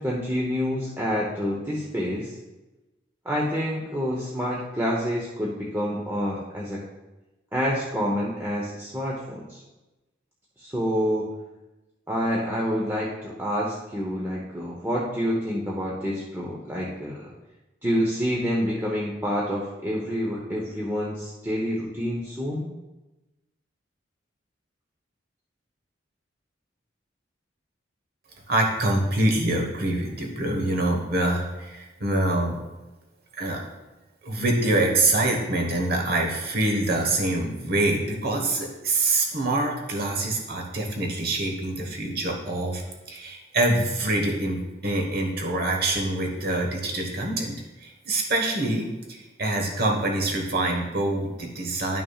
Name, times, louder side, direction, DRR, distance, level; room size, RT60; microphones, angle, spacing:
voice 1, 0.0-2.3 3.2-6.8 7.5-9.6 10.6-11.3 12.1-17.3 17.8-22.7, equal, 10° right, -5 dB, 0.8 m, -28 dB
voice 2, 28.5-32.6 33.3-33.6 34.2-42.8 43.1-52.0, right 2 dB, 55° right, 2 dB, 1.3 m, -25 dB
11.0 x 5.9 x 2.4 m, 1.1 s
head